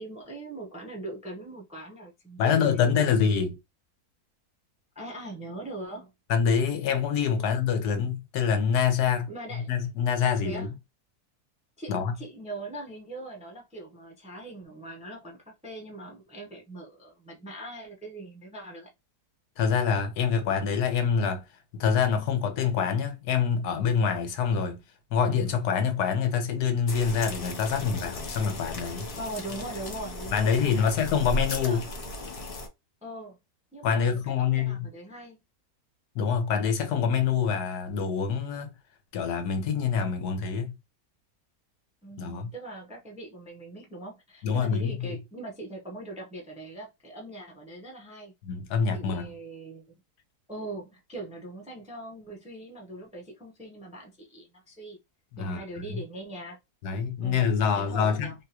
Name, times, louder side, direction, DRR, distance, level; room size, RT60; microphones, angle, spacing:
voice 1, 0.0-3.0 4.9-6.1 7.3-7.4 9.3-9.7 10.4-10.7 11.8-18.9 29.2-30.9 31.2-31.8 33.0-33.4 33.7-35.4 42.0-48.3 48.9-49.9 50.5-55.0 55.4-56.6 57.2-58.3, right 2 dB, 5° right, 0.5 m, -41 dB
voice 2, 2.4-3.6 6.3-9.3 9.7-10.7 11.9-12.1 19.6-21.5 21.7-24.8 25.1-29.1 30.3-31.8 33.8-34.9 36.1-38.7 39.1-40.8 42.2-42.5 44.4-45.2 48.4-49.3 55.3-56.0 56.8-58.3, left 6 dB, 90° left, 1.3 m, -26 dB
sound 1, 26.9-32.7, left 1 dB, 65° left, 0.3 m, -36 dB
3.6 x 2.3 x 2.8 m
omnidirectional pair, 1.6 m